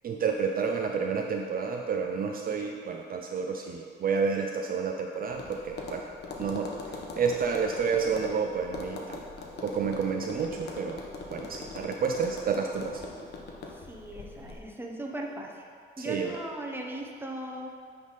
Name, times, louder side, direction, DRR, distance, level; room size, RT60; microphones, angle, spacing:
voice 1, 0.0-6.1 6.4-6.7 7.2-9.2 9.6-11.0 11.3-13.0 16.0-16.3, right 5 dB, 50° right, 2 dB, 0.5 m, -30 dB
Tap, 5.3-14.6, left 3 dB, 55° left, 1.0 m, -42 dB
voice 2, 13.7-15.6 16.0-17.7, right 1 dB, 10° right, 0 dB, 0.9 m, -38 dB
9.5 x 3.5 x 4.1 m, 2.2 s
cardioid pair, 90°, 20 cm